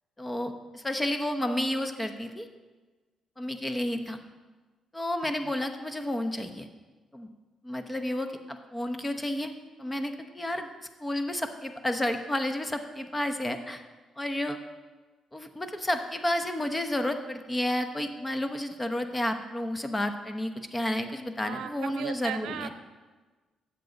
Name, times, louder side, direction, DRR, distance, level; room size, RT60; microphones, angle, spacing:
voice 1, 0.2-2.5 3.4-4.2 4.9-6.7 7.1-7.3 7.6-9.5 9.8-10.7 11.0-13.8 14.2-14.6 15.3-22.7, left 1 dB, 15° left, 7 dB, 1.0 m, -31 dB
voice 2, 21.4-22.7, right 9 dB, 85° right, 10 dB, 0.7 m, -37 dB
13.0 x 7.8 x 4.1 m, 1.3 s
cardioid pair, 90°, 0 cm